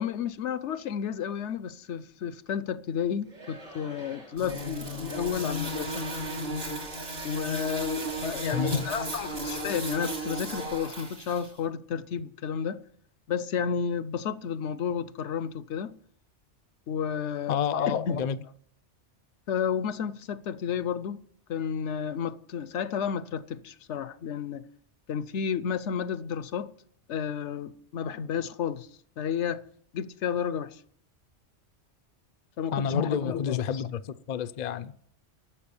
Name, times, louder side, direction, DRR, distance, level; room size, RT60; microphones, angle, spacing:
voice 1, 0.0-6.0 7.2-12.8 13.3-15.9 16.9-18.3 19.5-21.2 21.5-24.7 25.1-26.7 27.1-28.9 29.2-29.6 29.9-30.8 32.6-33.8, left 7 dB, 75° left, 0.9 m, -31 dB
Singing / Crowd, 3.2-8.9, right 2 dB, 85° right, 3.4 m, -49 dB
sound 1, 4.4-11.5, right 1 dB, 60° right, 3.0 m, -35 dB
voice 2, 8.5-8.9 17.5-18.4 32.7-34.9, left 7 dB, 50° left, 0.5 m, -30 dB
12.0 x 7.1 x 7.0 m
omnidirectional pair, 1.2 m